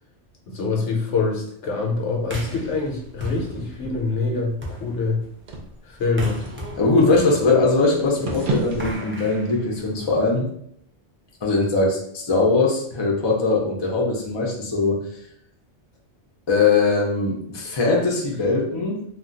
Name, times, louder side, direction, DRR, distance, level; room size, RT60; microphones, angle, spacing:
voice 1, 0.5-5.2 5.9-6.4, left 3 dB, 80° left, 0 dB, 1.0 m, -25 dB
sound 1, 1.9-9.0, right 3 dB, 55° right, 0.7 m, -35 dB
sound 2, 2.2-10.3, right 1 dB, 20° right, 0.3 m, -38 dB
voice 2, 6.8-10.5 11.4-15.0 16.5-19.1, left 3 dB, 30° left, -2 dB, 0.5 m, -21 dB
2.3 x 2.3 x 3.8 m, 0.67 s
omnidirectional pair, 1.2 m